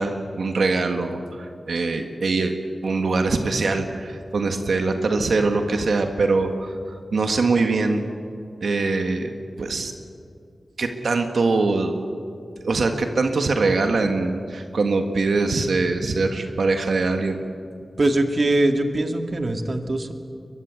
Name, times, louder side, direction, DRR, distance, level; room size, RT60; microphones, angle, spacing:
voice 1, 0.0-2.5 2.8-6.8 7.1-8.1 8.6-9.3 9.6-9.9 10.8-11.9 12.6-17.4, right 3 dB, 85° right, 5 dB, 1.8 m, -22 dB
voice 2, 18.0-20.1, right 2 dB, 50° right, 5 dB, 1.9 m, -22 dB
22.5 x 22.0 x 8.3 m, 2.4 s
wide cardioid pair, 75°, 0 cm